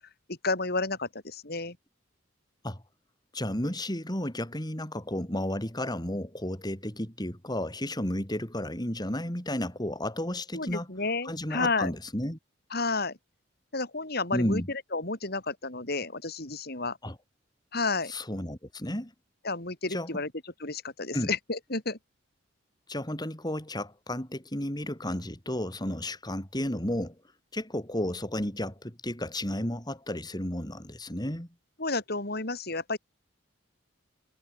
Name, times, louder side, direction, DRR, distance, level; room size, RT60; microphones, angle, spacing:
voice 1, 0.3-1.8 10.5-11.9 12.7-13.2 13.7-17.0 17.7-18.1 19.4-20.3 20.6-22.0 31.8-33.0, left 3 dB, 55° left, 5.0 m, -31 dB
voice 2, 3.3-10.9 11.2-12.4 14.3-14.7 17.0-17.2 18.1-19.1 19.9-20.1 21.1-21.3 22.9-27.2 27.5-31.5, left 1 dB, 20° left, 4.7 m, -32 dB
head